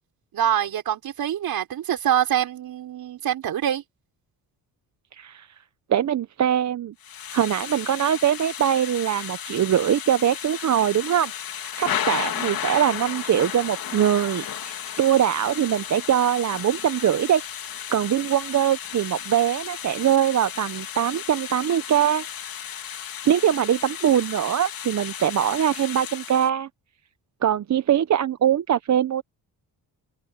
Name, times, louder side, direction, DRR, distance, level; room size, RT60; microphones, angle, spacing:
voice 1, 0.3-3.8, right 10 dB, 65° right, 4.3 m, -25 dB
voice 2, 5.1-5.5 5.9-6.9 7.3-11.3 11.8-17.4 17.9-22.2 23.3-26.7 27.4-29.2, right 10 dB, 45° right, 0.8 m, -22 dB
Thunder / Rain, 7.0-26.5, left 9 dB, 65° left, 3.0 m, -34 dB
open air
cardioid pair, 95°, 38 cm